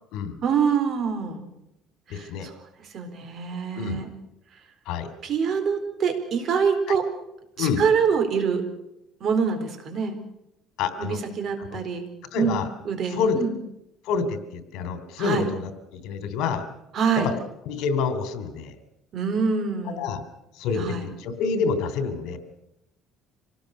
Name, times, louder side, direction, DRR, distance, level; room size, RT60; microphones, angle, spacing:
voice 1, 0.4-1.5 2.1-2.5 2.8-4.1 5.2-7.0 7.6-8.6 9.2-10.1 11.0-12.1 12.4-12.6 12.8-13.5 15.2-15.5 16.9-17.3 19.1-20.1 20.8-21.1, right 6 dB, 45° right, 7 dB, 4.2 m, -25 dB
voice 2, 2.1-2.5 3.8-4.0 4.9-5.1 6.9-7.0 7.6-7.8 10.8-11.2 11.6-11.8 12.3-12.7 13.1-13.4 14.0-16.7 17.2-17.3 17.6-18.7 20.0-20.2 20.6-22.4, left 5 dB, 75° left, 10 dB, 3.2 m, -27 dB
26.0 x 18.5 x 6.7 m, 0.84 s
cardioid pair, 140°, 0 cm